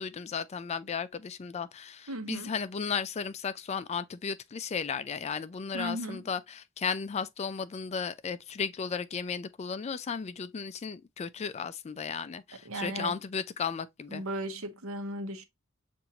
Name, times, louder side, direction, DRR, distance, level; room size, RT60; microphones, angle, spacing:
voice 1, 0.0-14.2, left 6 dB, 30° left, 0.3 m, -35 dB
voice 2, 2.1-2.5 5.7-6.3 12.6-13.1 14.1-15.4, right 1 dB, 80° right, 0.9 m, -36 dB
6.9 x 2.6 x 2.8 m
head